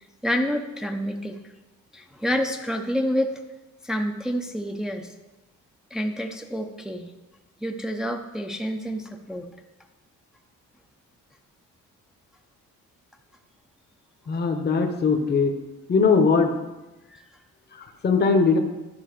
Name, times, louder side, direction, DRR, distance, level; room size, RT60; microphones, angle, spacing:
voice 1, 0.2-1.4 1.9-3.4 3.8-5.1 5.9-7.1 7.6-9.5 17.1-17.2, equal, ahead, 4 dB, 0.5 m, -28 dB
voice 2, 14.3-15.5 15.9-16.5 17.7-18.6, left 4 dB, 35° left, 4 dB, 0.8 m, -20 dB
11.5 x 5.3 x 4.9 m, 1.1 s
cardioid pair, 150°, 30 cm